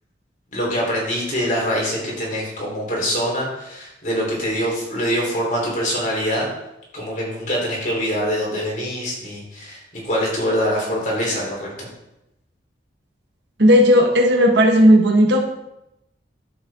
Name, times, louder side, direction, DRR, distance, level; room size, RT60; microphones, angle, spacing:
voice 1, 0.5-6.5 6.9-11.9, equal, 40° left, -3 dB, 3.8 m, -24 dB
voice 2, 13.6-15.4, equal, 65° right, 2 dB, 1.5 m, -14 dB
11.0 x 7.7 x 3.8 m, 0.88 s
head